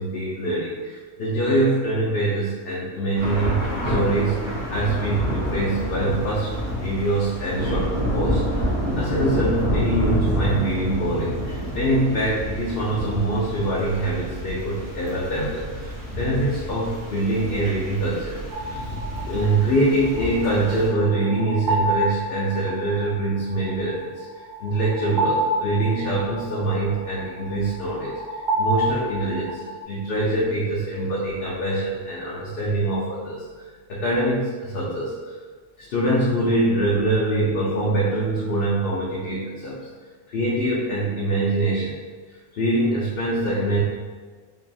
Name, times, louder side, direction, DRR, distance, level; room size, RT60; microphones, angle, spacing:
voice 1, 0.0-4.4 4.7-8.7 9.0-18.9 19.2-24.3 24.6-33.4 33.9-35.4 35.8-39.8 40.3-42.0 42.5-43.8, right 1 dB, 55° left, -5 dB, 0.8 m, -24 dB
Thunder / Rain, 3.2-20.9, equal, 75° right, 1.6 m, -28 dB
sound 1, 18.5-29.8, right 1 dB, 55° right, 0.6 m, -29 dB
5.3 x 2.4 x 2.6 m, 1.4 s
omnidirectional pair, 1.3 m